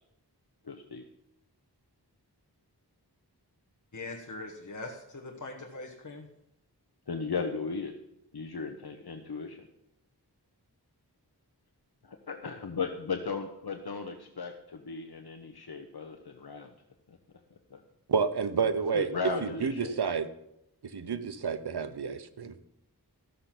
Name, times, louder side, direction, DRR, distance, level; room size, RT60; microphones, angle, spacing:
voice 1, 0.6-1.0 7.1-7.9 8.3-9.7 12.0-16.7 17.1-17.2 17.7-17.8 18.9-20.0, left 5 dB, 65° left, 4 dB, 0.9 m, -36 dB
voice 2, 3.9-6.3, left 2 dB, 50° left, 1 dB, 1.2 m, -41 dB
voice 3, 18.1-19.1 19.4-20.3 20.8-22.6, right 5 dB, 75° right, 11 dB, 0.8 m, -30 dB
14.0 x 6.7 x 5.9 m, 0.82 s
wide cardioid pair, 55°, 40 cm